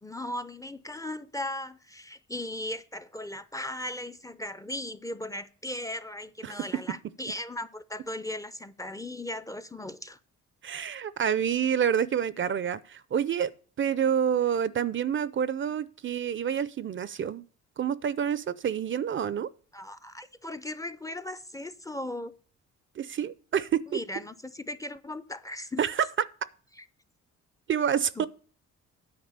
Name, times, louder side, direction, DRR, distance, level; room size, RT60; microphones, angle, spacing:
voice 1, 0.0-10.2 19.7-22.3 23.9-25.8 26.8-26.9 28.2-28.3, left 1 dB, 10° left, 0.5 m, -37 dB
voice 2, 10.6-13.5 13.8-17.4 17.8-19.5 23.0-24.0 25.8-26.1 27.7-28.3, right 8 dB, 40° right, 0.5 m, -28 dB
9.5 x 4.8 x 6.6 m
cardioid pair, 90°, 30 cm